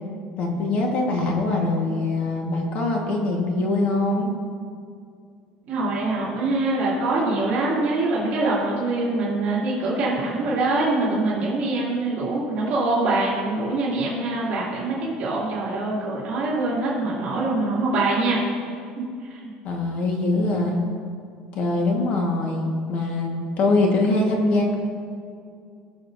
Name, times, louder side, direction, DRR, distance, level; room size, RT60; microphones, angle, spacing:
voice 1, 0.4-4.3 19.6-20.8 21.5-24.7, left 2 dB, 45° left, 0 dB, 1.5 m, -23 dB
voice 2, 5.7-18.4 19.3-19.5, right 2 dB, 45° right, -7 dB, 2.5 m, -24 dB
19.0 x 6.9 x 2.7 m, 2.3 s
cardioid pair, 160°, 3 cm